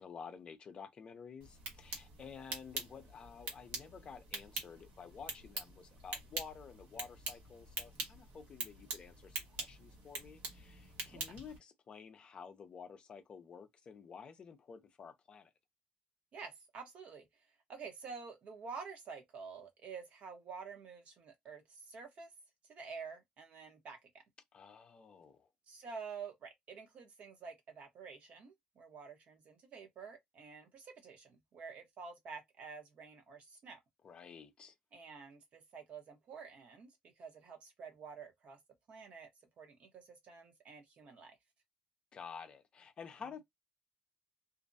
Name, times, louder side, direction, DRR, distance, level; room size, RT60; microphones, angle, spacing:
voice 1, 0.0-15.5 24.5-25.5 34.0-34.7 42.1-43.4, left 6 dB, 35° left, 0.5 m, -51 dB
sound 1, 1.4-11.6, right 3 dB, 80° right, 1.3 m, -45 dB
voice 2, 16.3-17.3 17.7-22.3 22.7-24.1 25.7-33.8 34.9-36.9 37.2-38.6 38.9-39.3 39.6-41.4, right 5 dB, 45° right, 0.9 m, -49 dB
2.5 x 2.1 x 2.6 m
cardioid pair, 155°, 3 cm